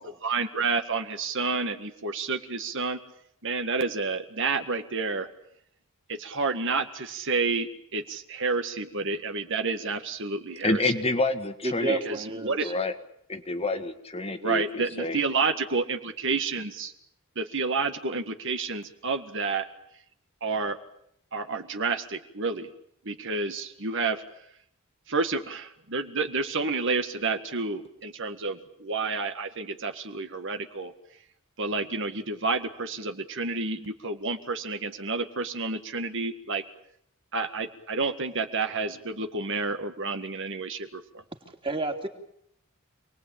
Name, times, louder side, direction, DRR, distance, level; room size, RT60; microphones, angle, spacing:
voice 1, 0.2-3.0 3.4-5.3 6.1-10.9 12.0-12.7 14.4-16.9 17.4-19.7 20.4-20.8 21.3-22.7 23.1-24.2 25.1-30.9 31.6-36.6 37.3-41.0, right 4 dB, 60° right, 7 dB, 1.9 m, -30 dB
voice 2, 10.6-12.0 12.6-12.9 13.3-15.2, left 2 dB, 30° left, 7 dB, 1.7 m, -28 dB
voice 3, 11.6-12.7 41.6-42.1, right 2 dB, 25° right, 4 dB, 3.0 m, -31 dB
28.0 x 20.0 x 8.9 m, 0.73 s
head